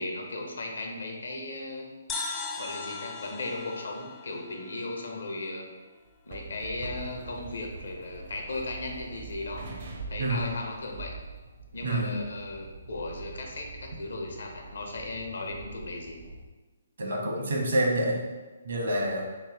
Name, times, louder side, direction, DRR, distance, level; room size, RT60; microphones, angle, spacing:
voice 1, 0.0-1.9 2.6-5.7 6.3-9.7 10.1-11.2 11.7-16.2, left 2 dB, 70° left, 1 dB, 0.7 m, -36 dB
sound 1, 2.1-5.6, left 4 dB, 15° left, 0.4 m, -38 dB
sound 2, 6.1-16.5, right 3 dB, 50° right, 0.5 m, -44 dB
voice 2, 10.2-10.5 11.8-12.2 17.0-18.2 18.6-19.2, right 1 dB, 70° right, -1 dB, 1.0 m, -27 dB
3.0 x 2.7 x 3.8 m, 1.3 s
figure-of-eight pair, 135°, 0 cm